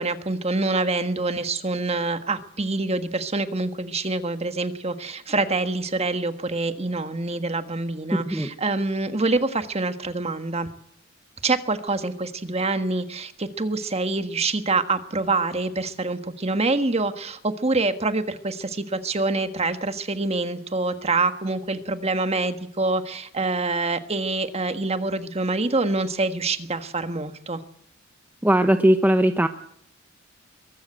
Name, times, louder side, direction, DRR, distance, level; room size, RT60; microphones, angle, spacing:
voice 1, 0.0-10.7 11.4-27.6, right 3 dB, 30° right, 9 dB, 1.4 m, -26 dB
voice 2, 28.4-29.5, right 1 dB, 10° right, 7 dB, 0.8 m, -19 dB
22.5 x 14.0 x 9.0 m, 0.73 s
head